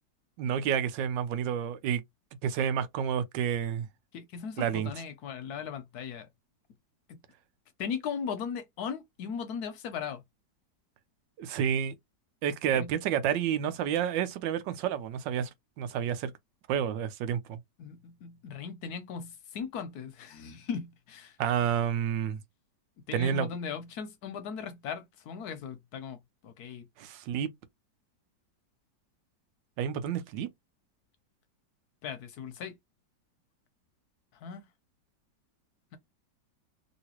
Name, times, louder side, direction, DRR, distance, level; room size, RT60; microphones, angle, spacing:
voice 1, 0.4-2.0 2.4-3.9 4.6-4.9 11.4-11.9 12.4-15.5 15.8-16.3 16.7-17.6 21.4-22.4 23.1-23.5 27.0-27.5 29.8-30.5, right 8 dB, 85° right, 1.3 m, -29 dB
voice 2, 4.1-6.3 7.1-7.2 7.8-10.2 12.7-12.9 17.8-21.4 23.1-26.2 26.4-26.8 32.0-32.8 34.3-34.7, left 6 dB, 70° left, 1.0 m, -38 dB
3.1 x 2.8 x 2.9 m
omnidirectional pair, 1.9 m